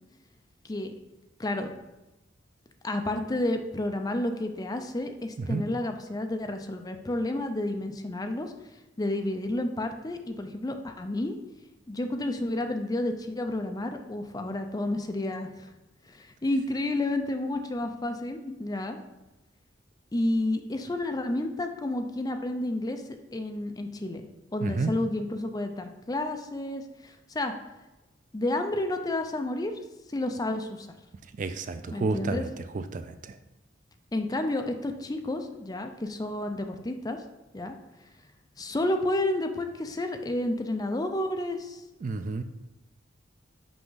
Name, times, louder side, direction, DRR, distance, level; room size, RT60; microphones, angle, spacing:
voice 1, 1.4-1.7 2.8-8.5 9.0-11.4 11.9-15.7 16.1-19.0 20.1-23.0 23.3-24.2 24.5-27.5 28.3-29.7 30.1-30.9 31.9-32.4 34.1-37.2 37.5-37.8 38.6-41.8, left 1 dB, 20° left, 6 dB, 0.5 m, -30 dB
voice 2, 31.4-32.5 32.7-33.1 42.0-42.4, right 3 dB, 45° right, 10 dB, 0.4 m, -30 dB
6.0 x 5.1 x 3.8 m, 1.0 s
head